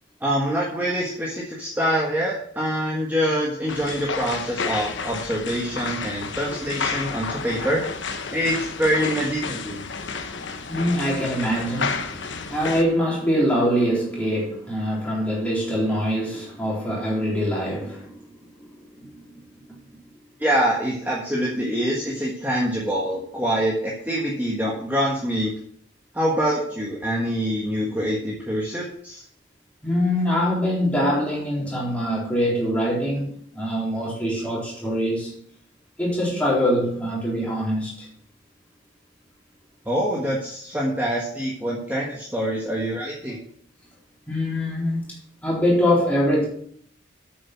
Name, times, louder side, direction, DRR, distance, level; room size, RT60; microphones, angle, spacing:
voice 1, 0.2-7.8 8.3-9.9 20.4-25.5 26.1-29.2 39.8-43.4, equal, 10° right, 1.5 m, -25 dB
sound 1, 3.7-12.8, left 5 dB, 75° left, 1.0 m, -31 dB
voice 2, 7.1-7.7 8.5-8.6 10.2-18.3 18.6-19.2 19.6-19.7 29.8-35.3 36.0-38.1 44.3-45.0 45.4-46.5, equal, 5° left, 3.9 m, -24 dB
8.6 x 7.1 x 6.0 m
head